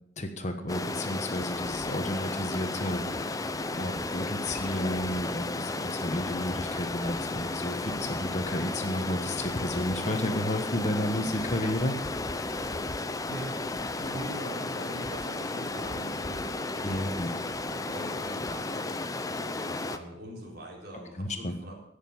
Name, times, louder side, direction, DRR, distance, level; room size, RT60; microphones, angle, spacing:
voice 1, 0.2-3.5 3.8-12.0 16.8-17.3 21.2-21.5, left 1 dB, 40° left, 6 dB, 1.3 m, -32 dB
Stream, 0.7-20.0, left 2 dB, 20° left, 0.6 m, -33 dB
voice 2, 13.3-13.6 14.0-21.8, right 1 dB, 55° right, -1 dB, 4.1 m, -43 dB
17.0 x 6.8 x 7.3 m, 0.77 s
head